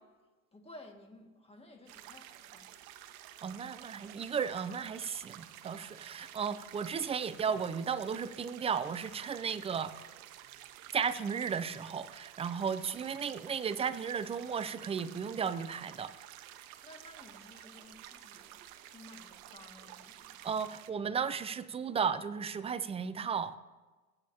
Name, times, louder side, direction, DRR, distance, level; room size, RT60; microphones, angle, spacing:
voice 1, 0.5-2.7 16.8-20.5, left 1 dB, 15° left, 3 dB, 1.9 m, -55 dB
sound 1, 1.9-20.9, right 12 dB, 65° right, 0.9 m, -51 dB
voice 2, 3.4-9.9 10.9-16.1 20.4-23.6, right 6 dB, 15° right, 13 dB, 0.4 m, -34 dB
19.5 x 8.1 x 2.8 m, 1.2 s
hypercardioid pair, 85°, 45 cm